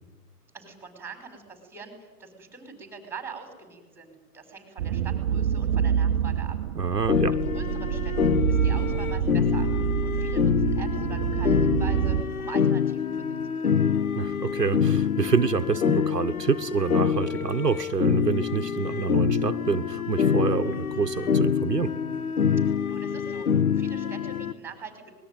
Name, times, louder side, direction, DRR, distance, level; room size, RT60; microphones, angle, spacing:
voice 1, 0.5-6.6 7.3-9.7 10.0-13.4 13.6-13.9 22.8-25.1, right 5 dB, 5° right, 6 dB, 5.1 m, -43 dB
sound 1, 4.8-12.2, right 9 dB, 40° right, 1.3 m, -27 dB
voice 2, 6.7-7.4 14.1-21.9, right 5 dB, 80° right, 8 dB, 1.4 m, -27 dB
sound 2, 7.1-24.5, left 7 dB, 60° left, 1.4 m, -26 dB
25.5 x 21.0 x 9.3 m, 1.2 s
figure-of-eight pair, 120°, 47 cm